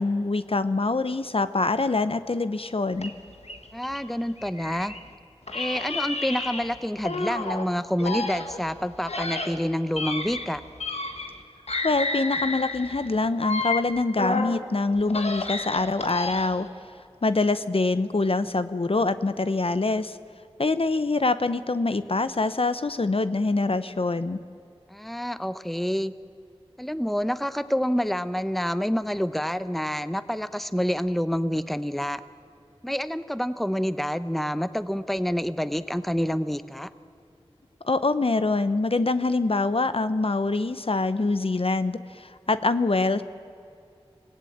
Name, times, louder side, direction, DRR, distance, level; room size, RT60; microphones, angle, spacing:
voice 1, 0.0-3.1 11.8-16.7 17.2-20.2 20.6-24.4 37.8-43.2, left 3 dB, 65° left, 12 dB, 0.9 m, -25 dB
sound 1, 3.0-5.1 5.5-7.7 8.0-11.4 11.7-14.6 15.0-16.7, left 3 dB, 85° left, 1.6 m, -31 dB
voice 2, 3.7-4.9 5.5-10.6 24.9-26.1 26.8-32.2 32.8-36.9, equal, ahead, 13 dB, 0.8 m, -28 dB
25.5 x 17.5 x 8.7 m, 2.6 s
wide cardioid pair, 45°, 11 cm